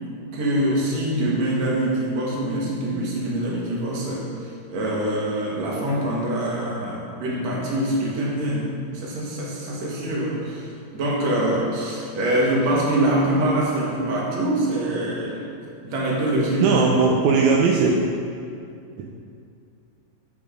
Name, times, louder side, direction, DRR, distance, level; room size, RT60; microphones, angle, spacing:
voice 1, 0.3-15.4 15.8-17.0, right 1 dB, 65° right, -4 dB, 2.7 m, -24 dB
voice 2, 16.6-17.9 19.0-19.1, right 5 dB, 85° right, -1 dB, 2.0 m, -18 dB
8.4 x 7.0 x 5.0 m, 2.4 s
omnidirectional pair, 3.3 m